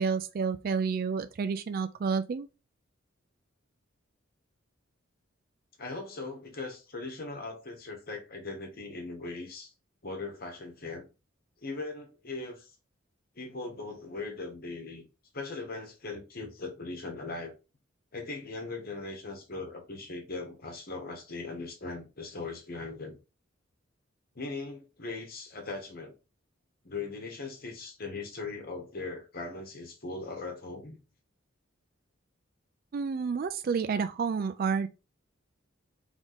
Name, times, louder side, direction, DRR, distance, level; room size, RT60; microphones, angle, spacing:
voice 1, 0.0-2.5 32.9-34.9, right 5 dB, 45° right, 0.3 m, -30 dB
voice 2, 5.8-9.7 10.0-11.0 11.6-12.7 13.3-15.0 15.3-17.5 18.1-23.2 24.3-26.1 26.8-31.0, left 3 dB, 50° left, 1.4 m, -39 dB
3.6 x 3.6 x 4.0 m
head